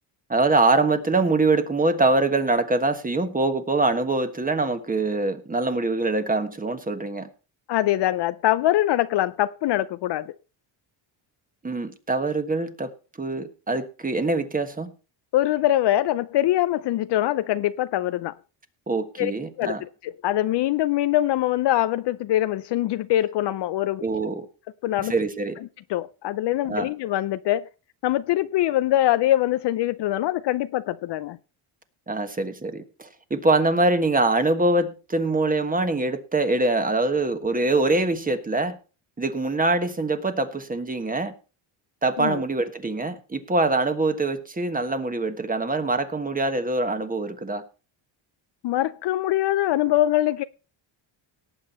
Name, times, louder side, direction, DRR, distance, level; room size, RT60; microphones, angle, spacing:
voice 1, 0.3-7.3 11.6-12.9 13.2-14.9 18.9-19.8 24.0-24.4 25.1-25.6 26.7-26.9 32.1-38.8 39.2-41.3 42.0-47.6, right 2 dB, 15° right, 1.4 m, -24 dB
voice 2, 7.7-10.3 15.3-18.3 19.2-19.3 19.6-24.0 24.8-25.1 25.9-27.7 28.0-31.4 42.2-42.4 48.6-50.4, left 14 dB, 60° left, 0.6 m, -23 dB
18.0 x 7.6 x 4.2 m
cardioid pair, 125°, 47 cm